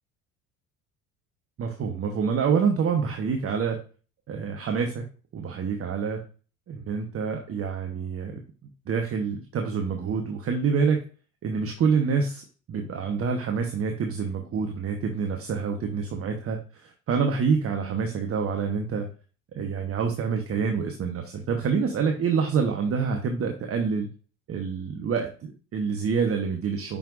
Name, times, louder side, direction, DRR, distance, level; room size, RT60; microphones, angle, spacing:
voice 1, 1.6-3.8 4.3-5.0 5.3-6.2 6.7-8.4 8.9-11.0 11.4-19.1 19.5-24.1 24.5-27.0, right 5 dB, 35° right, 4 dB, 1.1 m, -27 dB
8.7 x 5.7 x 2.6 m, 0.39 s
figure-of-eight pair, 60°, 42 cm